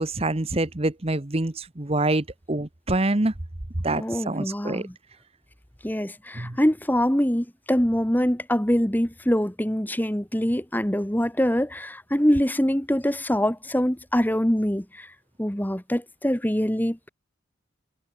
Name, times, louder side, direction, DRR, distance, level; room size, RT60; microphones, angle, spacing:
voice 1, 0.0-3.3 3.8-4.9 6.3-6.6, right 2 dB, 30° right, 1.1 m, -26 dB
voice 2, 3.9-4.9 5.8-15.1 15.4-17.1, equal, 10° left, 1.6 m, -24 dB
head